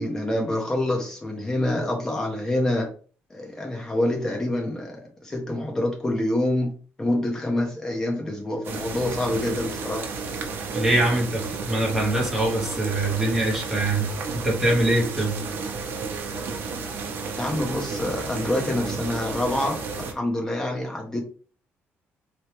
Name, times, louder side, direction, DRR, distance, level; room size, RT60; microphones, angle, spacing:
voice 1, 0.0-2.9 3.3-6.7 7.0-10.0 17.4-21.2, left 1 dB, 15° left, 1 dB, 1.0 m, -26 dB
sound 1, 8.6-20.1, right 4 dB, 50° right, 0.8 m, -32 dB
voice 2, 10.7-15.4, right 1 dB, 5° right, -3 dB, 1.3 m, -23 dB
4.3 x 3.0 x 3.5 m, 0.40 s
cardioid pair, 175°, 5 cm